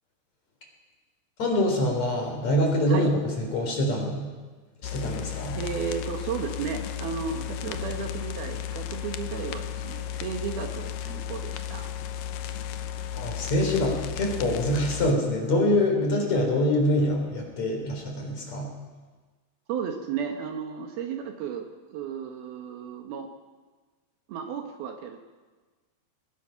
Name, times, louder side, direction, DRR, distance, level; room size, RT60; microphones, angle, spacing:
voice 1, 1.4-4.3 4.9-5.6 13.2-18.7, left 1 dB, 40° left, 2 dB, 4.6 m, -25 dB
sound 1, 4.8-15.1, left 9 dB, 80° left, 1.9 m, -34 dB
voice 2, 5.5-11.9 19.7-23.3 24.3-25.2, right 7 dB, 70° right, 4 dB, 2.9 m, -34 dB
22.0 x 20.5 x 5.8 m, 1.3 s
omnidirectional pair, 5.0 m